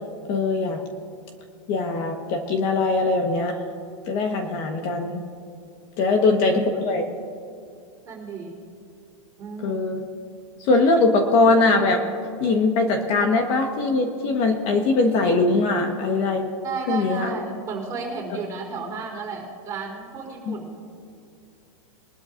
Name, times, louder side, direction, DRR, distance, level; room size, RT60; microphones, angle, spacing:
voice 1, 0.3-0.8 1.7-3.6 4.1-5.2 6.0-7.1 9.6-10.0 10.6-12.0 12.4-16.5 16.9-17.3 20.5-20.6, left 3 dB, 35° left, 4 dB, 1.3 m, -21 dB
voice 2, 8.0-8.6 9.4-9.8 16.6-20.8, right 4 dB, 20° right, -2 dB, 3.9 m, -33 dB
22.5 x 12.0 x 2.6 m, 2.4 s
supercardioid pair, 160°, 17 cm